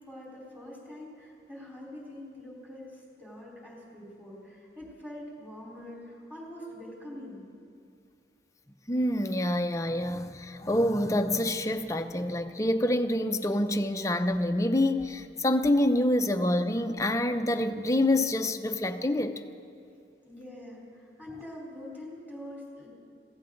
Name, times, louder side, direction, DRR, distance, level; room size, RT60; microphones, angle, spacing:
voice 1, 0.0-7.4 20.2-22.9, left 1 dB, 10° right, -5 dB, 4.2 m, -44 dB
voice 2, 8.9-19.3, left 1 dB, 15° left, 7 dB, 0.6 m, -26 dB
22.0 x 16.5 x 3.9 m, 2.4 s
head